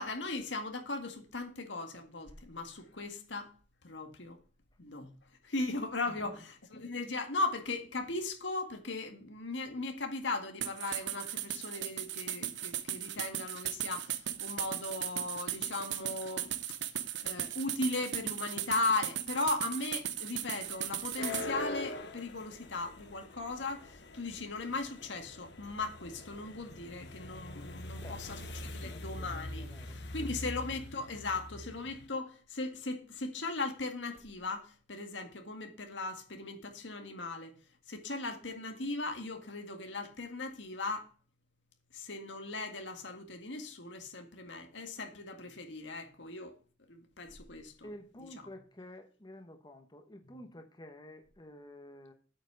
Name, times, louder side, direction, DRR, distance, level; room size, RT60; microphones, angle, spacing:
voice 1, 0.0-3.5 3.8-4.4 4.8-5.1 5.4-16.5 17.2-37.5 37.9-41.1 41.9-46.6 46.9-47.9, left 3 dB, 85° left, 1.9 m, -38 dB
sound 1, 10.6-21.5, right 11 dB, 80° right, 0.9 m, -37 dB
sound 2, 20.6-32.1, left 1 dB, 65° left, 1.3 m, -43 dB
voice 2, 28.0-28.4 28.7-30.3 47.8-52.1, left 1 dB, 25° left, 1.2 m, -51 dB
8.7 x 6.0 x 7.0 m
head